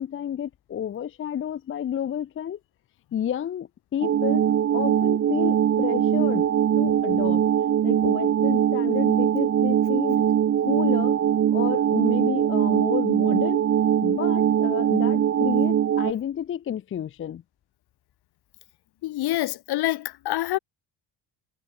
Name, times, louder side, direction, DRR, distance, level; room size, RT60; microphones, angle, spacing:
voice 1, 0.0-2.6 3.1-4.4 4.7-6.5 6.8-7.4 7.8-10.2 10.6-11.2 11.5-13.6 14.0-17.4, left 9 dB, 30° left, 0.6 m, -30 dB
sound 1, 4.0-16.1, right 9 dB, 35° right, 1.0 m, -22 dB
voice 2, 19.0-20.6, left 16 dB, 65° left, 1.5 m, -26 dB
cardioid pair, 160°, 41 cm